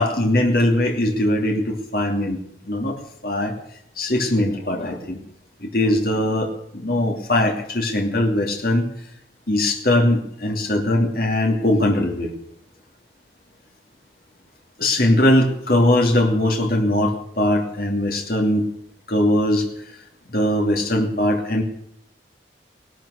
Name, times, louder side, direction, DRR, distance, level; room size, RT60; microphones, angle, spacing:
voice 1, 0.0-2.4 2.7-3.0 3.2-3.5 4.0-5.2 5.6-6.5 6.7-8.8 9.5-12.3 14.8-18.6 19.1-19.7 20.3-21.6, left 1 dB, 55° left, 1 dB, 2.7 m, -20 dB
17.5 x 12.5 x 6.5 m, 0.73 s
head